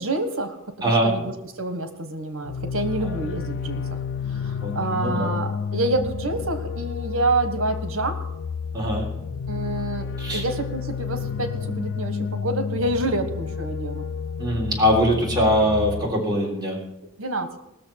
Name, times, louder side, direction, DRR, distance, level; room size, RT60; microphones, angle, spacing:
voice 1, 0.0-3.8 4.3-8.2 9.5-10.1 10.3-14.0 17.2-17.5, right 2 dB, 80° right, 8 dB, 1.4 m, -27 dB
voice 2, 0.8-1.1 3.0-3.1 4.6-5.3 8.7-9.1 10.2-10.4 14.4-16.8, equal, 20° right, -3 dB, 3.5 m, -22 dB
sound 1, 2.4-16.1, left 6 dB, 60° left, 0.4 m, -30 dB
18.5 x 6.8 x 5.9 m, 0.85 s
head